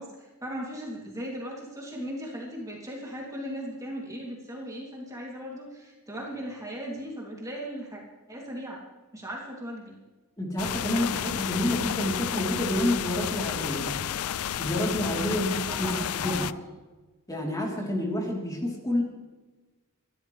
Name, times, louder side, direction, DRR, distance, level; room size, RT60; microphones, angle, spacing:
voice 1, 0.0-8.0 8.3-8.8 9.1-9.9 15.4-16.5, equal, 15° right, -3 dB, 2.7 m, -38 dB
voice 2, 10.4-13.9 14.6-16.4 17.3-19.0, left 1 dB, 15° left, -2 dB, 3.4 m, -29 dB
sound 1, 10.6-16.5, left 10 dB, 80° left, 0.4 m, -31 dB
25.5 x 13.0 x 3.3 m, 1.3 s
head